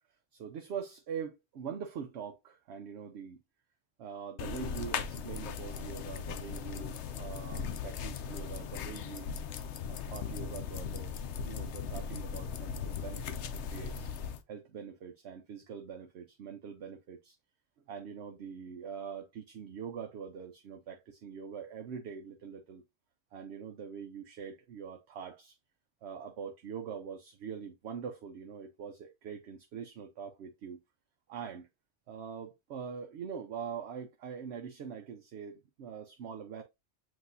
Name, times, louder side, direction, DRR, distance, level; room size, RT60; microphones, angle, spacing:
voice 1, 0.3-3.4 4.0-9.3 9.9-14.1 14.5-17.3 17.9-22.8 23.3-25.6 26.0-30.8 31.3-31.7 32.1-36.6, right 7 dB, 65° right, 0.9 m, -43 dB
sound 1, 4.4-14.4, left 6 dB, 70° left, 0.8 m, -38 dB
7.7 x 2.6 x 2.6 m
omnidirectional pair, 1.2 m